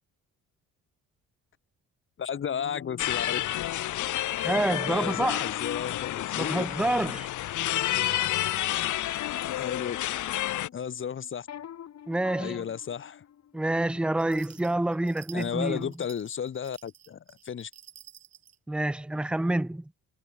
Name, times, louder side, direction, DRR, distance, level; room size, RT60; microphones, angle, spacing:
voice 1, 2.2-3.7 4.9-6.7 9.6-10.0 10.7-11.5 12.4-13.2 15.3-17.2 17.4-17.7, left 8 dB, 40° left, 1.1 m, -33 dB
sound 1, 2.4-7.0 7.5-15.2 15.5-15.9, left 10 dB, 60° left, 2.1 m, -46 dB
sound 2, 3.0-10.7, left 14 dB, 75° left, 1.5 m, -30 dB
voice 2, 4.4-5.5 6.4-7.3 12.1-12.6 13.5-15.9 18.7-19.9, right 1 dB, 5° right, 0.6 m, -28 dB
sound 3, 14.2-18.6, right 9 dB, 60° right, 3.8 m, -52 dB
cardioid pair, 90°, 30 cm